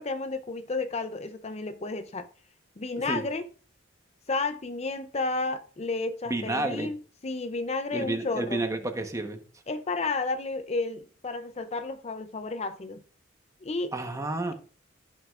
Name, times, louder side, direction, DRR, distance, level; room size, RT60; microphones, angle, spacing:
voice 1, 0.0-2.3 2.8-3.4 4.3-8.6 9.7-13.0 13.6-13.9, left 3 dB, 35° left, 0.6 m, -32 dB
voice 2, 6.3-6.9 7.9-9.4 13.9-14.5, right 2 dB, 15° right, 1.1 m, -30 dB
16.0 x 6.4 x 2.5 m
head